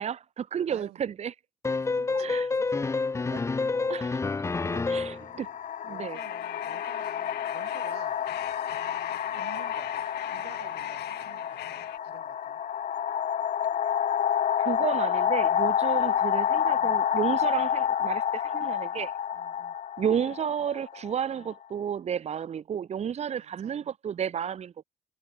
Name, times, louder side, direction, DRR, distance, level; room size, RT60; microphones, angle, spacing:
voice 1, 0.0-1.3 2.1-2.5 3.9-4.1 4.9-5.5 5.8-6.2 14.6-19.1 20.0-24.7, right 8 dB, 40° right, 1.2 m, -32 dB
voice 2, 0.7-1.0 1.8-2.9 3.2-4.1 4.6-5.4 5.9-8.2 9.3-9.9 10.3-12.6 15.5-15.6 16.8-17.7 19.3-19.8 21.3-21.5 23.3-23.9, right 16 dB, 80° right, 5.0 m, -51 dB
sound 1, 1.6-5.3, left 4 dB, 15° left, 0.7 m, -28 dB
sound 2, 3.7-3.9 4.9-21.5, left 9 dB, 45° left, 1.4 m, -29 dB
sound 3, 6.1-12.0, left 16 dB, 80° left, 3.9 m, -43 dB
cardioid pair, 110°, 17 cm